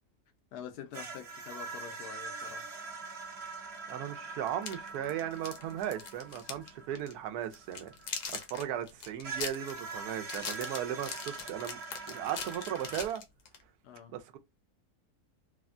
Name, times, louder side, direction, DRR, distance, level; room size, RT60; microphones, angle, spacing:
voice 1, 0.5-2.7 13.8-14.1, left 9 dB, 90° left, 1.2 m, -46 dB
sound 1, 0.9-8.6 9.2-13.1, right 4 dB, 55° right, 0.9 m, -44 dB
voice 2, 3.9-7.9 8.5-11.8 12.1-13.2 14.1-14.4, right 10 dB, 85° right, 1.1 m, -36 dB
sound 2, 4.5-6.7 7.0-7.1 7.5-13.6, left 6 dB, 65° left, 1.0 m, -41 dB
3.3 x 2.1 x 2.4 m
omnidirectional pair, 1.6 m